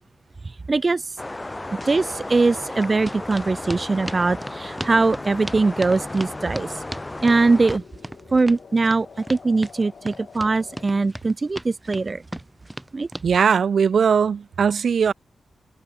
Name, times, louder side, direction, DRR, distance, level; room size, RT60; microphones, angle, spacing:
voice 1, 0.7-1.1 1.7-6.8 7.2-7.8 8.3-12.2 12.9-13.1, right 3 dB, 30° right, 0.6 m, -21 dB
sound 1, 1.2-7.8, left 2 dB, 15° left, 0.6 m, -34 dB
sound 2, 3.1-13.3, right 1 dB, 10° right, 1.4 m, -36 dB
sound 3, 4.0-10.8, left 6 dB, 55° left, 2.4 m, -47 dB
voice 2, 13.2-15.1, right 6 dB, 60° right, 1.0 m, -19 dB
wide cardioid pair, 140°, 0 cm